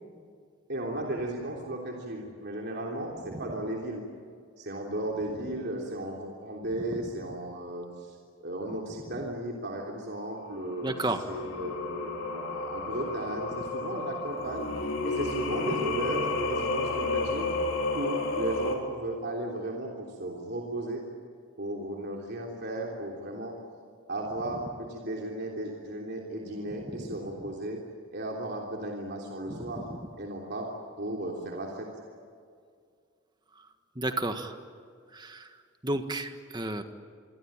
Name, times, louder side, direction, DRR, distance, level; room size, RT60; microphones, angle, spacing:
voice 1, 0.7-4.0 4.6-14.7 15.0-17.5 17.9-21.0 21.6-23.6 24.1-27.8 28.1-29.9 30.2-30.7 31.0-31.9, right 1 dB, 50° right, -1 dB, 3.4 m, -35 dB
Singing, 10.5-18.7, left 3 dB, 65° left, 4.5 m, -31 dB
voice 2, 10.8-11.2 29.5-30.0 34.0-34.5 35.1-35.4 35.8-36.8, right 2 dB, 20° right, 7 dB, 1.6 m, -32 dB
27.0 x 23.5 x 8.9 m, 2.2 s
head